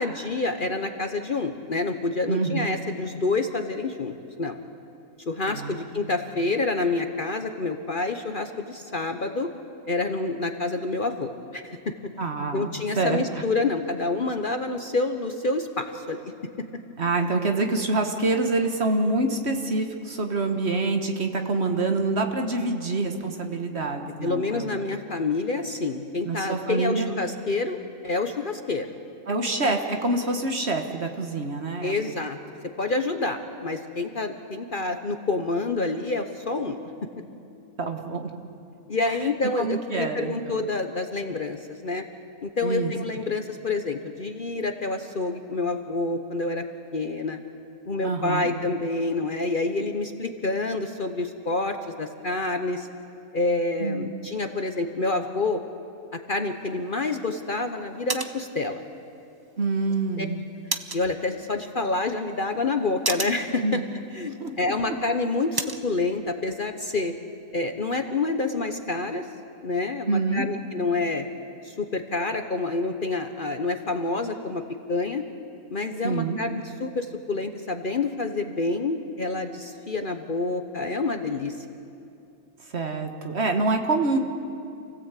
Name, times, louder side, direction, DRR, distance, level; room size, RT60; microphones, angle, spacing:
voice 1, 0.0-4.1 4.4-4.6 5.3-9.5 9.8-11.9 12.5-16.3 24.2-27.8 28.0-28.9 31.8-32.4 32.8-36.8 38.9-42.0 42.4-46.6 46.9-47.4 47.9-52.9 53.3-55.6 56.1-58.8 60.2-60.3 60.9-63.8 64.1-67.1 67.5-69.3 69.6-71.2 71.6-74.6 74.9-75.2 75.7-81.5, left 3 dB, 40° left, 6 dB, 1.0 m, -28 dB
voice 2, 2.3-2.7 5.4-5.9 12.2-13.4 17.0-24.8 26.2-27.1 29.3-32.2 37.8-38.3 39.6-40.6 42.6-42.9 48.0-48.5 53.8-54.1 59.6-60.4 63.6-63.8 64.4-64.5 64.9-65.0 70.1-70.4 76.0-76.4 82.7-84.2, right 3 dB, 50° right, 4 dB, 1.7 m, -26 dB
sound 1, 56.4-65.9, right 3 dB, 20° right, 0.6 m, -38 dB
28.0 x 17.0 x 8.3 m, 2.6 s
omnidirectional pair, 1.5 m